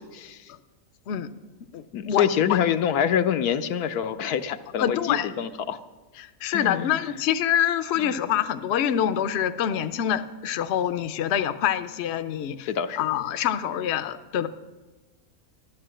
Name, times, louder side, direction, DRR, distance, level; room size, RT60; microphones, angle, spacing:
voice 1, 0.1-0.5 1.9-5.8 6.5-7.0 8.0-8.1 12.7-13.0, left 8 dB, 80° left, 9 dB, 1.3 m, -26 dB
voice 2, 1.7-2.6 4.8-5.3 6.2-12.7 13.0-14.5, left 10 dB, 55° left, 10 dB, 0.8 m, -26 dB
13.5 x 11.5 x 7.6 m, 1.2 s
omnidirectional pair, 1.6 m